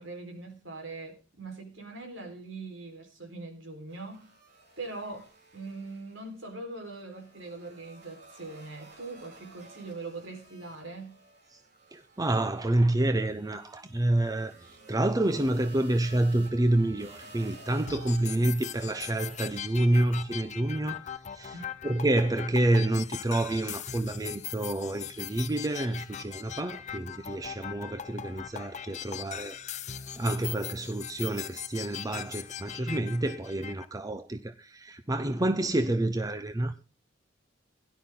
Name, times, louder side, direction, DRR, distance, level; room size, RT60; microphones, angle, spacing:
voice 1, 0.0-4.2 4.8-11.2 21.5-21.8, right 3 dB, 80° right, 4.3 m, -42 dB
sound 1, 3.9-6.5 6.8-19.6, right 2 dB, 60° right, 4.0 m, -53 dB
voice 2, 11.9-21.6 21.8-36.7, right 1 dB, 20° right, 0.7 m, -28 dB
sound 2, 17.9-33.9, left 9 dB, 40° left, 0.7 m, -40 dB
17.0 x 11.0 x 3.8 m
head